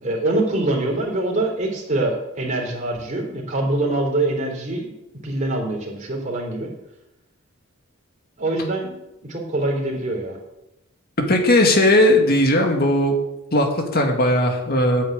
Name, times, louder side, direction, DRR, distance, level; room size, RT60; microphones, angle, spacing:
voice 1, 0.0-4.9 5.2-6.7 8.4-8.9 9.3-10.4, right 2 dB, 35° right, -1 dB, 3.5 m, -24 dB
voice 2, 11.2-13.2 13.5-15.0, left 1 dB, 45° left, 3 dB, 2.2 m, -17 dB
9.2 x 8.7 x 8.4 m, 0.91 s
head